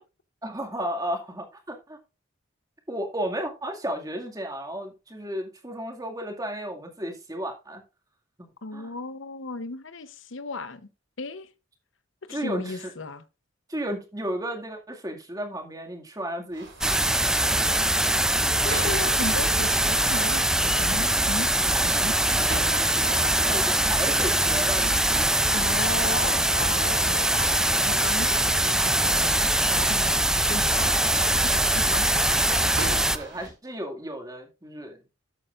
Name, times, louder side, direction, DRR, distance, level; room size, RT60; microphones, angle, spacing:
voice 1, 0.4-2.0 2.9-7.8 8.4-8.9 12.3-12.8 13.7-17.1 17.5-17.7 23.4-25.3 25.5-25.6 31.8-32.0 32.9-35.0, right 1 dB, 20° right, 2.1 m, -34 dB
voice 2, 8.6-10.9 11.2-11.5 12.2-13.2 18.6-21.5 21.8-22.5 25.5-30.9 31.5-32.3 33.4-33.5, left 3 dB, 85° left, 0.9 m, -36 dB
sound 1, 16.5-33.5, right 2 dB, 70° right, 6.1 m, -40 dB
sound 2, 16.8-33.2, right 1 dB, 5° right, 0.4 m, -23 dB
13.0 x 8.9 x 2.5 m
head